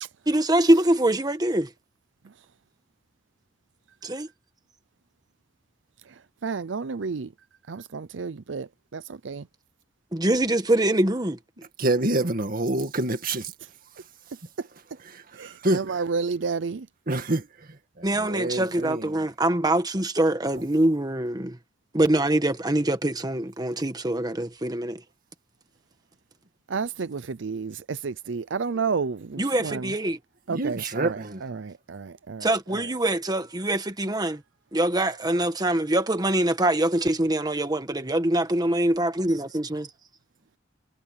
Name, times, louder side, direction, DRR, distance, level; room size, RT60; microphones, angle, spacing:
voice 1, 0.3-1.7 4.0-4.3 10.1-11.4 18.0-21.6 21.9-25.0 29.4-30.2 32.4-34.4 34.7-39.9, right 1 dB, 20° right, 1.5 m, -24 dB
voice 2, 6.4-7.3 7.7-9.4 15.4-16.9 26.7-29.9 30.5-32.8, right 5 dB, 75° right, 0.6 m, -31 dB
voice 3, 11.8-13.5 15.6-15.8 17.1-17.4 18.2-19.0 30.5-31.4, right 2 dB, 50° right, 2.1 m, -26 dB
head